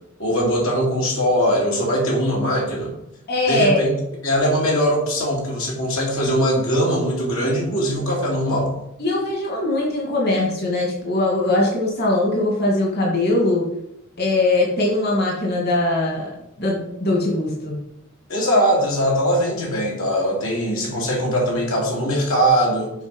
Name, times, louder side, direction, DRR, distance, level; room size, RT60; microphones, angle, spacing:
voice 1, 0.2-2.9 3.5-3.9 4.2-8.7 18.3-22.9, equal, 85° left, -2 dB, 2.7 m, -21 dB
voice 2, 3.3-3.9 9.0-13.7 14.2-16.3 16.6-17.8, left 2 dB, 50° left, -2 dB, 2.1 m, -21 dB
8.1 x 4.7 x 5.3 m, 0.82 s
head